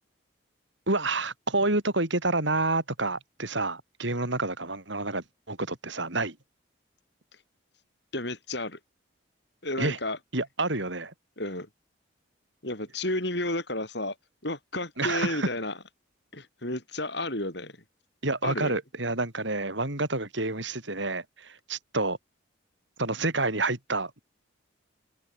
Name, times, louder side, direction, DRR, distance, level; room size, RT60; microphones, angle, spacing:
voice 1, 0.9-6.4 9.8-10.0 10.3-11.1 15.0-15.5 18.2-22.2 23.0-24.2, right 2 dB, 65° right, 4.1 m, -28 dB
voice 2, 8.1-8.8 9.6-10.2 11.4-11.7 12.6-14.1 14.4-15.8 16.3-17.8 18.4-18.8, left 1 dB, 55° left, 6.8 m, -32 dB
head